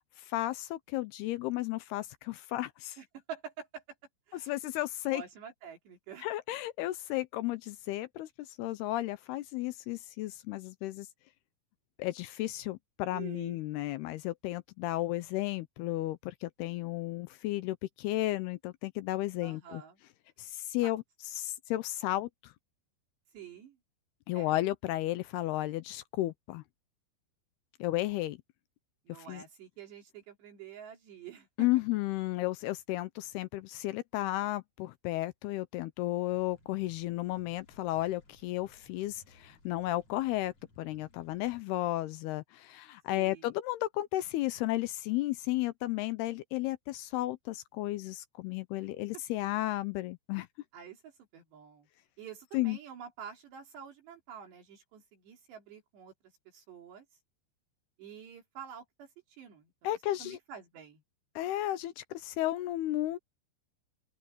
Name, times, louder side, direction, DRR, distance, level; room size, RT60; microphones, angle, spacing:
voice 1, 0.2-3.0 4.4-5.2 6.2-11.1 12.0-19.8 20.4-21.0 21.4-22.5 24.3-26.6 27.8-28.4 29.1-29.4 31.6-50.5 52.5-52.8 59.8-60.4 61.4-63.2, left 16 dB, 80° left, 2.4 m, -33 dB
voice 2, 3.0-3.8 4.3-4.6 5.1-6.3 13.1-13.6 19.4-20.0 20.8-20.9 23.3-23.8 24.3-24.6 29.1-31.7 43.1-43.5 50.7-51.9 52.2-56.1 56.5-57.1 58.0-59.1 59.4-61.0, right 8 dB, 70° right, 5.2 m, -48 dB
sound 1, 36.3-41.6, left 2 dB, 35° left, 6.1 m, -63 dB
open air
omnidirectional pair, 5.1 m